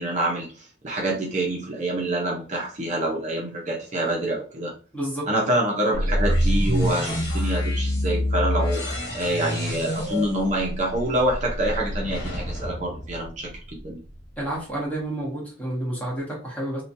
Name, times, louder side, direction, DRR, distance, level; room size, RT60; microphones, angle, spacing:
voice 1, 0.0-4.7 5.3-14.0, right 1 dB, 40° right, -1 dB, 0.6 m, -26 dB
voice 2, 4.9-5.3 14.4-16.8, right 1 dB, 10° left, -4 dB, 1.1 m, -30 dB
sound 1, 5.9-13.8, equal, 60° left, 1.0 m, -26 dB
2.8 x 2.2 x 2.6 m, 0.35 s
head